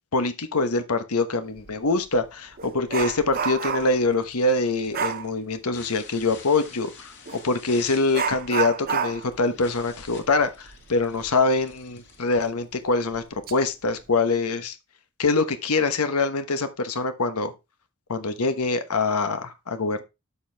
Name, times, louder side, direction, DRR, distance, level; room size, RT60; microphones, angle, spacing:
voice 1, 0.1-13.2 13.5-14.8 15.2-17.5 18.1-20.0, left 3 dB, 85° left, 1.1 m, -24 dB
Dog, 1.6-1.7 2.1-4.1 4.9-5.3 7.3-7.4 8.1-11.4 11.7-11.8 12.4-12.5 13.1-13.5 13.9-14.1, right 7 dB, 40° right, 0.6 m, -30 dB
sound 1, 3.7-13.3, left 5 dB, 55° left, 2.2 m, -48 dB
12.5 x 4.6 x 3.4 m
head